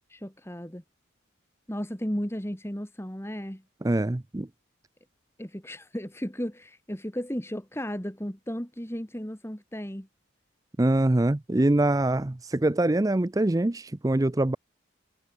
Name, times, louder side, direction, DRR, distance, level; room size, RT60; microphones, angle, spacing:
voice 1, 0.1-0.8 1.7-3.6 5.4-10.1, equal, 10° left, 2.2 m, -34 dB
voice 2, 3.8-4.5 10.8-14.6, right 1 dB, 15° right, 0.5 m, -24 dB
head